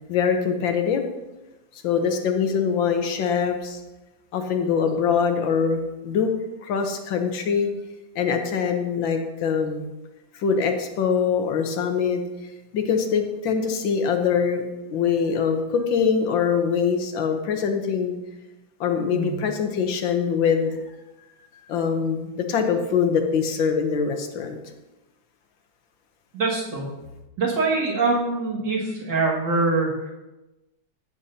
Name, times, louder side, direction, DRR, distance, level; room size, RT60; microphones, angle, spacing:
voice 1, 0.1-1.0 1.8-3.8 4.3-6.3 6.6-7.7 8.1-9.8 10.3-12.2 12.7-14.6 14.9-18.2 18.8-20.8 21.2-21.4 21.7-24.6, left 6 dB, 80° left, 5 dB, 1.7 m, -23 dB
voice 2, 26.3-26.8 27.4-30.1, right 3 dB, 65° right, -4 dB, 2.7 m, -24 dB
15.0 x 7.0 x 2.8 m, 1.0 s
omnidirectional pair, 2.1 m